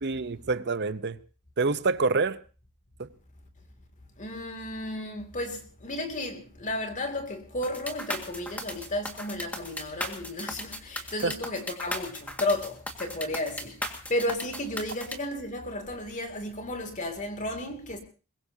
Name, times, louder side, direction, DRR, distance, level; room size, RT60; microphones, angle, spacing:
voice 1, 0.0-1.2 1.6-2.4 3.0-3.1 11.2-11.3, right 3 dB, 50° right, 0.8 m, -27 dB
voice 2, 4.2-13.7 14.1-18.0, left 1 dB, 35° left, 2.6 m, -33 dB
sound 1, 7.6-15.2, left 1 dB, 5° left, 1.9 m, -36 dB
22.0 x 21.5 x 2.8 m
head